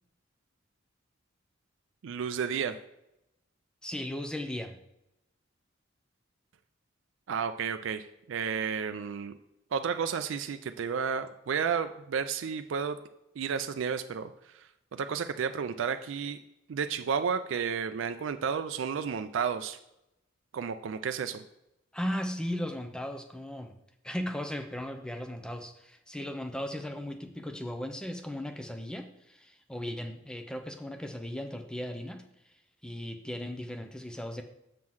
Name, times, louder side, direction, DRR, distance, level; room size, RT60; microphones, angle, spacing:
voice 1, 2.0-2.8 7.3-9.3 9.7-13.0 13.4-16.4 16.7-19.8 20.5-21.4, right 6 dB, 75° right, 9 dB, 0.4 m, -32 dB
voice 2, 3.8-4.8 21.9-23.8 24.0-32.2 32.8-34.4, left 1 dB, 5° left, 6 dB, 0.6 m, -37 dB
7.5 x 3.7 x 6.1 m, 0.86 s
head